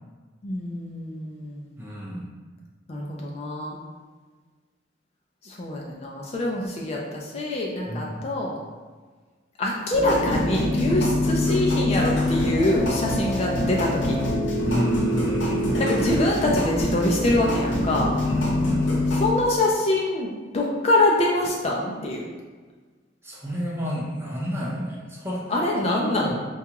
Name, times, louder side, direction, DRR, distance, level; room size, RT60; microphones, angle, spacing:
voice 1, 0.4-1.7 2.9-3.8 5.4-8.6 9.6-14.2 15.8-18.1 19.2-22.2 25.5-26.3, left 1 dB, 35° left, -2 dB, 0.3 m, -25 dB
voice 2, 1.8-2.3 7.9-8.2 14.6-15.8 18.2-18.9 23.2-25.6 25.8-26.4, equal, 10° right, -5 dB, 0.6 m, -30 dB
sound 1, 9.9-19.3, left 1 dB, 75° left, 0.8 m, -24 dB
4.6 x 2.3 x 2.9 m, 1.4 s
head